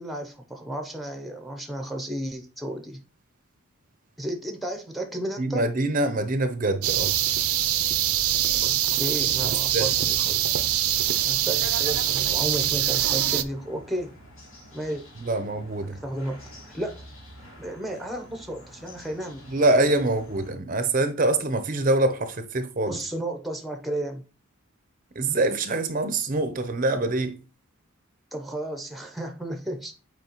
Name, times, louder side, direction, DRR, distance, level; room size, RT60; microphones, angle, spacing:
voice 1, 0.0-3.0 4.2-5.6 8.5-10.7 10.9-14.1 14.7-15.0 16.0-16.4 16.7-17.0 17.6-19.4 22.9-24.2 28.3-29.9, right 1 dB, ahead, 0.7 m, -33 dB
voice 2, 5.4-7.2 9.4-9.9 10.2-10.3 15.2-16.0 19.5-23.0 25.1-27.4, right 2 dB, 40° right, 0.6 m, -25 dB
sound 1, 6.8-13.4, right 12 dB, 90° right, 0.6 m, -24 dB
sound 2, 9.9-20.5, equal, 65° left, 2.7 m, -48 dB
7.9 x 4.5 x 3.0 m
head